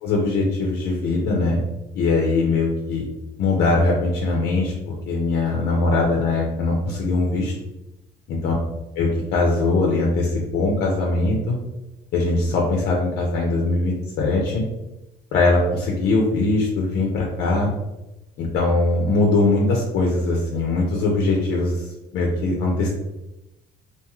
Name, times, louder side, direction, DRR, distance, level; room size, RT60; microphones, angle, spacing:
voice 1, 0.0-1.6 1.9-3.1 3.4-7.5 8.3-8.5 9.0-11.6 12.1-14.6 15.3-17.7 18.4-21.9 22.1-22.9, left 2 dB, 80° left, -1 dB, 0.6 m, -21 dB
2.5 x 2.3 x 3.0 m, 0.95 s
cardioid pair, 110°, 17 cm